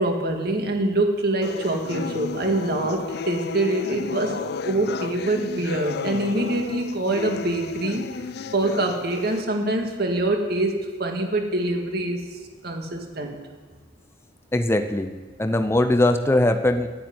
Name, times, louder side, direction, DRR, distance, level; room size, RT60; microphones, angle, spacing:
voice 1, 0.0-8.1 8.5-12.4 12.6-13.4, right 2 dB, 60° right, 3 dB, 1.9 m, -25 dB
sound 1, 1.4-9.4, left 5 dB, 60° left, 0.4 m, -33 dB
voice 2, 14.5-15.1 15.4-16.9, left 1 dB, 15° left, 7 dB, 0.6 m, -20 dB
10.0 x 8.8 x 9.3 m, 1.4 s
head